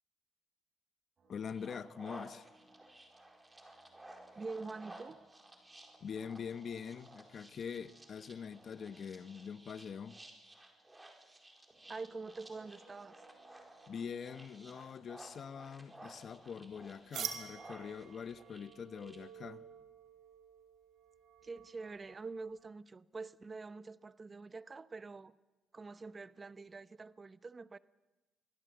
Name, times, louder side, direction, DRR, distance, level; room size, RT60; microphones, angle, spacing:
sound 1, 1.2-18.8, right 2 dB, 50° right, 7.9 m, -68 dB
voice 1, 1.3-2.5 6.0-10.2 13.9-19.6, left 6 dB, 55° left, 1.0 m, -44 dB
sound 2, 1.5-19.2, right 1 dB, 15° right, 4.5 m, -56 dB
voice 2, 4.4-5.2 11.9-13.2 21.4-25.4 25.7-27.8, right 4 dB, 30° right, 0.9 m, -46 dB
sound 3, 17.1-22.7, right 8 dB, 70° right, 2.6 m, -48 dB
24.5 x 17.0 x 7.9 m
cardioid pair, 90°, 0 cm